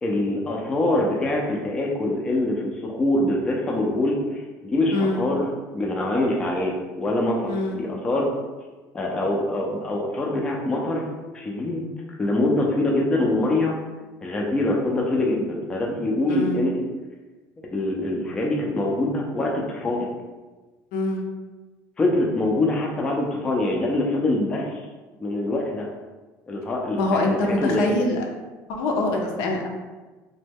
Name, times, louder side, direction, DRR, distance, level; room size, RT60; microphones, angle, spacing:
voice 1, 0.0-8.4 8.9-11.1 11.3-11.9 12.2-13.8 14.2-16.8 17.7-20.1 22.0-24.9 25.2-25.9 26.5-28.0, left 2 dB, 15° left, -1 dB, 0.3 m, -24 dB
voice 2, 16.3-16.6 20.9-21.2 27.0-28.3 28.7-29.7, left 2 dB, 70° left, 2 dB, 0.5 m, -24 dB
3.0 x 2.1 x 3.4 m, 1.2 s
cardioid pair, 170°, 6 cm